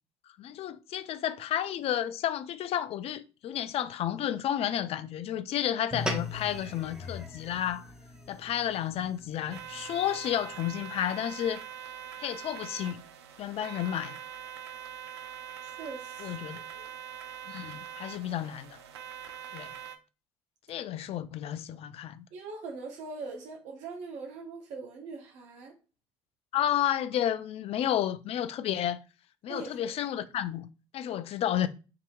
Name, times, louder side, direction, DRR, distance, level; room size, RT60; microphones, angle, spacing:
voice 1, 0.4-7.9 8.3-11.6 12.2-13.0 13.4-14.2 16.2-16.6 17.5-18.8 19.5-19.7 20.7-22.3 26.5-29.0 29.4-30.7 30.9-31.7, left 11 dB, 50° left, 0.4 m, -31 dB
sound 1, 5.9-10.5, left 2 dB, 5° right, 1.3 m, -39 dB
sound 2, 9.5-20.0, right 9 dB, 85° right, 0.4 m, -43 dB
voice 2, 15.6-16.4 16.7-16.9 22.3-25.8 29.5-29.9, right 4 dB, 65° right, 0.9 m, -42 dB
4.7 x 2.8 x 2.3 m
hypercardioid pair, 55°, 13 cm